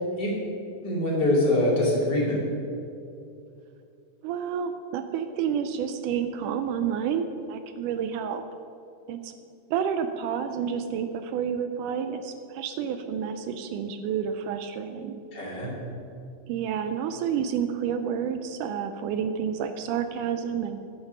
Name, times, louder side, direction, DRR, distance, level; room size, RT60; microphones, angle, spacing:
voice 1, 0.8-2.4 15.3-15.7, left 1 dB, 35° left, -3 dB, 2.5 m, -24 dB
voice 2, 4.2-8.4 9.1-9.3 9.7-15.2 16.5-20.8, right 7 dB, 80° right, 8 dB, 1.9 m, -29 dB
11.0 x 8.9 x 5.4 m, 2.6 s
omnidirectional pair, 4.0 m